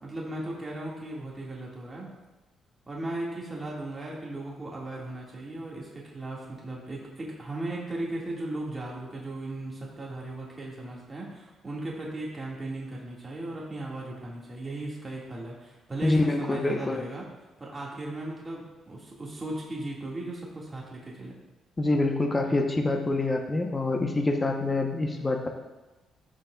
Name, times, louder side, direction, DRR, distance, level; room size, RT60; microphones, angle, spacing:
voice 1, 0.0-2.1 2.9-17.3 17.6-21.4, right 2 dB, 25° right, -4 dB, 1.9 m, -37 dB
voice 2, 16.0-17.0 21.8-25.5, left 2 dB, 25° left, 3 dB, 0.8 m, -26 dB
13.5 x 6.2 x 2.3 m, 1.1 s
cardioid pair, 90°, 0 cm